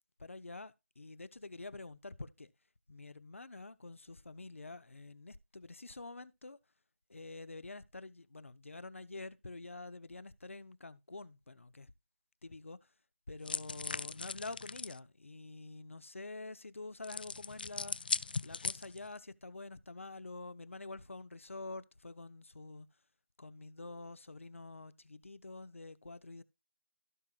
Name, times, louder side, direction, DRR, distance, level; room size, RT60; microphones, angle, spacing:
voice 1, 0.2-2.5 2.9-6.6 7.1-11.9 12.4-12.9 13.3-18.0 18.4-22.9 23.4-26.4, left 3 dB, 75° left, 1.0 m, -47 dB
sound 1, 13.4-15.0 17.0-19.2, left 4 dB, 45° left, 0.4 m, -39 dB
16.0 x 6.1 x 2.5 m
figure-of-eight pair, 165°, 7 cm